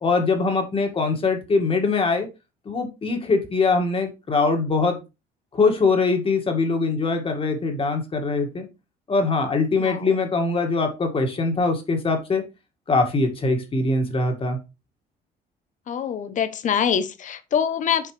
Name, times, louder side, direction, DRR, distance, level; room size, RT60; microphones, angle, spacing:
voice 1, 0.0-2.3 2.7-5.0 5.5-8.7 9.1-12.4 12.9-14.6, left 3 dB, 35° left, 1.9 m, -22 dB
voice 2, 9.8-10.1 15.9-18.1, left 8 dB, 50° left, 0.9 m, -24 dB
7.5 x 4.7 x 3.2 m
cardioid pair, 110°, 17 cm